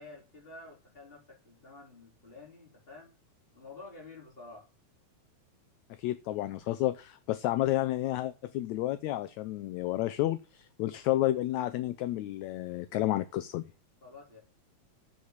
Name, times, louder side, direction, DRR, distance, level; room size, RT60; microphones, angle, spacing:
voice 1, 0.0-3.2 3.5-4.7 14.0-14.4, left 3 dB, 15° left, -2 dB, 3.9 m, -50 dB
voice 2, 6.0-13.6, left 15 dB, 75° left, 12 dB, 1.8 m, -31 dB
8.2 x 5.7 x 7.8 m, 0.33 s
omnidirectional pair, 3.5 m